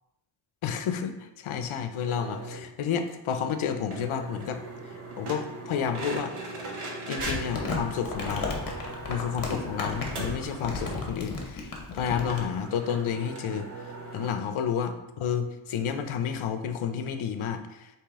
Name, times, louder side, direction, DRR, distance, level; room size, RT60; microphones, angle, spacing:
voice 1, 0.6-4.6 5.2-6.3 7.1-8.6 9.1-13.7 14.1-17.9, left 7 dB, 75° left, 8 dB, 0.6 m, -30 dB
sound 1, 2.0-2.6 3.1-3.2 3.4-3.5 3.9-11.1 11.5-11.6 11.8-11.9 12.3-14.3, right 2 dB, 85° right, 1.0 m, -39 dB
Crumpling crinkling, 7.2-12.4, left 3 dB, 45° left, 0.9 m, -34 dB
4.9 x 3.0 x 3.5 m, 0.96 s
wide cardioid pair, 160°, 49 cm